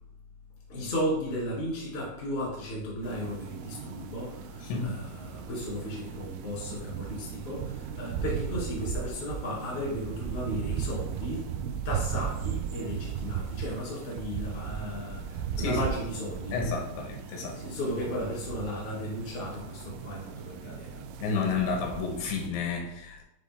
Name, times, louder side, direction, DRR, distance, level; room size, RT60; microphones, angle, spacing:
voice 1, 0.7-11.4 11.8-16.6 17.5-21.0, equal, 30° left, -5 dB, 1.1 m, -35 dB
sound 1, 3.0-22.5, right 9 dB, 90° right, 2.3 m, -37 dB
voice 2, 4.6-5.0 15.6-15.8 16.5-17.6 21.2-23.2, left 5 dB, 90° left, 0 dB, 3.7 m, -31 dB
9.2 x 3.2 x 3.5 m, 0.84 s
omnidirectional pair, 5.2 m